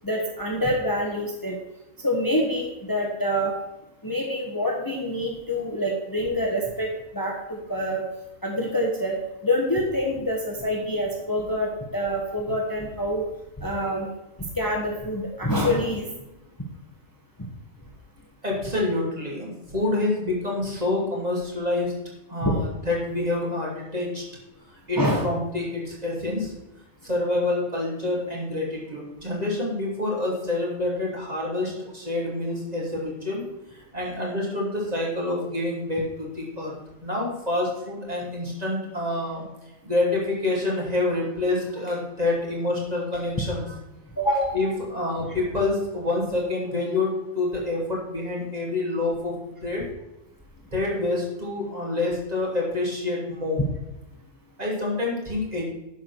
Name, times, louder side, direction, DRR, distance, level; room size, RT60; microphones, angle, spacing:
voice 1, 0.0-1.6 2.0-3.5 4.0-8.0 8.4-9.1 9.4-13.2 13.6-14.1 14.6-16.1 22.4-22.5 25.0-25.3 44.2-44.6, equal, 15° left, -1 dB, 1.3 m, -26 dB
voice 2, 18.4-21.9 22.3-24.2 24.9-26.5 27.0-36.8 37.0-39.4 39.8-43.8 44.5-49.9 50.7-53.7 54.6-55.6, left 2 dB, 30° right, -3 dB, 2.9 m, -27 dB
11.0 x 4.9 x 6.2 m, 0.95 s
omnidirectional pair, 1.4 m